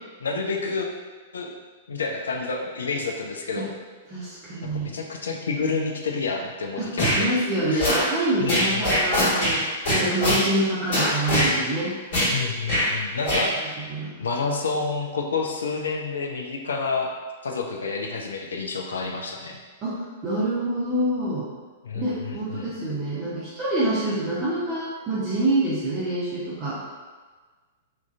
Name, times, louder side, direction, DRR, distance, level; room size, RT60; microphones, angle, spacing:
voice 1, 0.2-0.9 1.3-1.5 1.9-3.7 4.6-7.3 7.7-8.0 8.4-8.8 12.3-13.8 14.2-17.1 17.4-19.6 21.8-22.7, left 4 dB, 65° left, 2 dB, 0.3 m, -29 dB
voice 2, 4.1-4.9 6.8-9.6 9.9-11.9 13.4-13.5 13.9-14.1 19.8-21.5 21.9-26.8, right 1 dB, 25° right, -10 dB, 0.5 m, -26 dB
sound 1, 7.0-7.2 7.8-8.0 8.5-9.6 9.8-10.4 10.9-11.5 12.1-12.3 12.7-12.9 13.2-13.5, equal, 50° left, 1.0 m, -22 dB
2.4 x 2.2 x 2.5 m, 1.4 s
figure-of-eight pair, 105°, 0 cm